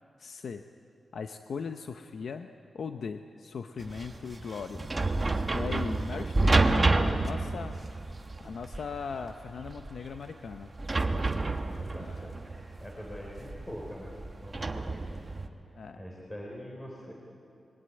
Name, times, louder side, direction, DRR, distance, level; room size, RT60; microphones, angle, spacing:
voice 1, 0.2-0.6 1.1-2.5 2.7-4.9 5.5-7.8 8.4-10.7 12.0-12.2 15.8-16.0, left 5 dB, 70° left, 7 dB, 0.8 m, -39 dB
sound 1, 3.8-15.5, right 2 dB, 25° right, 1.2 m, -29 dB
voice 2, 11.3-15.2 16.0-17.1, equal, 15° left, -2 dB, 3.9 m, -44 dB
26.0 x 22.0 x 9.8 m, 2.6 s
wide cardioid pair, 155°, 0 cm